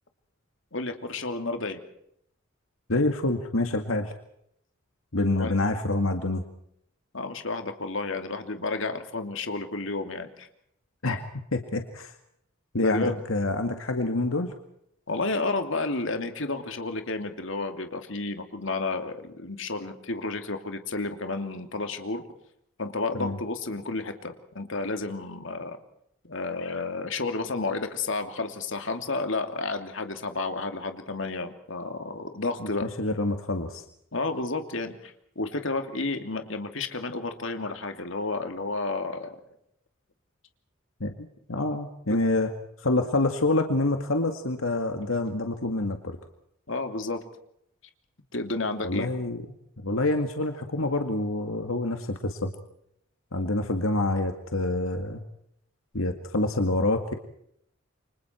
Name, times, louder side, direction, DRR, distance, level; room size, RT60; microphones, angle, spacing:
voice 1, 0.7-1.8 5.3-5.5 7.1-10.5 12.8-13.2 15.1-22.2 22.8-25.8 26.2-32.9 34.1-39.4 46.7-47.2 48.3-49.1, left 3 dB, 65° left, 6 dB, 2.8 m, -31 dB
voice 2, 2.9-4.1 5.1-6.4 11.0-12.1 12.7-14.5 23.1-23.4 32.6-33.8 41.0-41.1 41.5-42.5 42.8-46.2 48.8-49.5 49.8-52.5 53.3-55.2 55.9-57.1, left 2 dB, 85° left, 6 dB, 2.1 m, -27 dB
29.0 x 25.5 x 4.5 m, 0.72 s
head